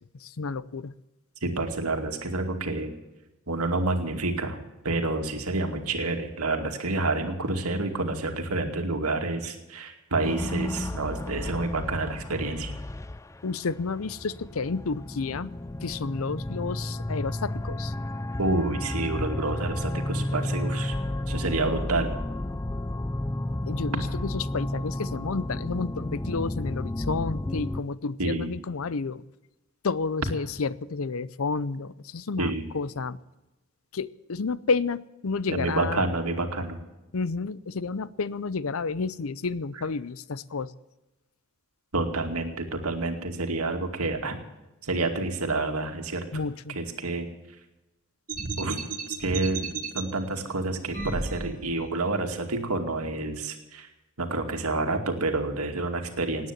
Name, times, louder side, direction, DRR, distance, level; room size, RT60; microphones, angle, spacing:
voice 1, 0.1-0.9 13.4-15.5 15.8-17.9 23.7-29.2 29.8-33.2 33.9-36.0 37.1-40.7 46.3-46.8, left 4 dB, 70° left, 18 dB, 0.6 m, -31 dB
voice 2, 1.4-2.9 3.5-4.6 4.8-12.7 18.4-21.0 21.3-22.1 28.2-28.5 32.4-32.7 35.5-36.8 41.9-44.4 44.8-46.2 46.8-47.3 48.6-48.9 49.2-53.9 54.2-56.5, right 2 dB, 90° right, 5 dB, 2.4 m, -28 dB
sound 1, 10.2-27.8, left 1 dB, 15° left, 0.4 m, -32 dB
sound 2, 48.3-50.0 50.9-51.9, right 4 dB, 40° right, 1.5 m, -33 dB
18.0 x 9.5 x 7.4 m, 1.0 s
head